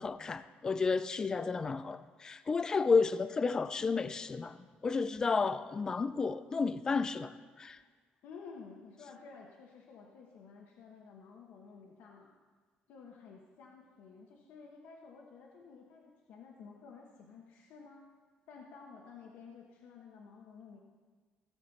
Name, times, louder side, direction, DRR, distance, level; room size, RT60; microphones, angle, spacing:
voice 1, 0.0-4.6 4.8-7.8, left 4 dB, 20° left, 13 dB, 0.3 m, -32 dB
voice 2, 8.2-12.3 12.9-18.0 18.5-20.8, left 5 dB, 75° left, 0 dB, 1.1 m, -52 dB
16.5 x 7.5 x 4.1 m, 1.5 s
cardioid pair, 170°, 3 cm